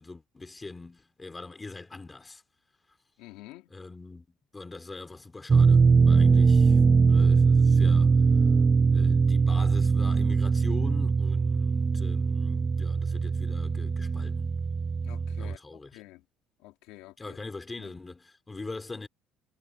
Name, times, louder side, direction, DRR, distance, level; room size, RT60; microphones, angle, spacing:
voice 1, 0.0-2.4 3.7-6.8 7.1-8.2 8.9-14.5 15.4-16.0 17.2-19.1, left 3 dB, 10° left, 2.6 m, -43 dB
voice 2, 3.2-3.7 15.0-15.6 15.9-16.2 16.6-17.4 17.8-17.9, left 18 dB, 85° left, 2.3 m, -48 dB
sound 1, 5.5-15.5, right 5 dB, 15° right, 0.5 m, -22 dB
cardioid pair, 175°, 0 cm